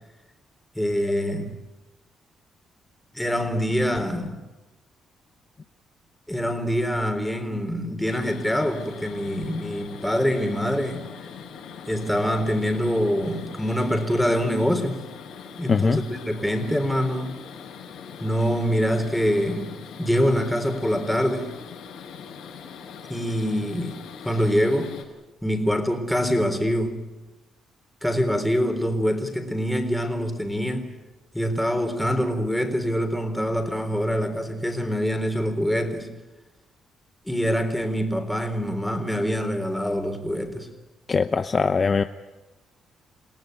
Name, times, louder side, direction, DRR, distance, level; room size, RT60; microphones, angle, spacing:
voice 1, 0.8-1.5 3.1-4.4 6.3-11.1 11.9-15.0 15.6-17.3 18.2-19.7 20.0-21.5 23.1-24.0 24.2-24.9 25.4-27.1 28.0-30.9 31.3-36.1 37.3-40.7, equal, 5° left, 3.8 m, -25 dB
sound 1, 8.0-25.0, left 6 dB, 85° left, 7.2 m, -42 dB
voice 2, 15.7-16.0 41.1-42.0, left 5 dB, 30° left, 0.8 m, -21 dB
29.5 x 18.0 x 9.3 m
cardioid pair, 130°, 0 cm